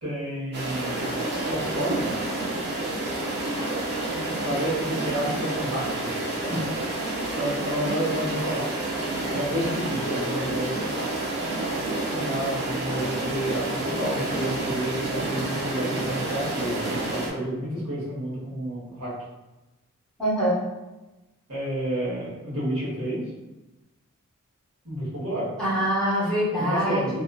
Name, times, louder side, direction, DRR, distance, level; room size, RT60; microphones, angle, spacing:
voice 1, 0.0-1.1 1.4-2.1 4.4-6.6 7.3-8.7 9.3-10.9 12.1-19.1 21.5-23.2 24.8-25.5 26.6-27.2, right 1 dB, 70° right, -8 dB, 1.1 m, -30 dB
sound 1, 0.5-17.3, right 2 dB, 50° right, 0.5 m, -29 dB
voice 2, 20.2-20.6 25.6-27.2, equal, 5° left, -9 dB, 0.9 m, -24 dB
2.5 x 2.3 x 2.2 m, 1.0 s
head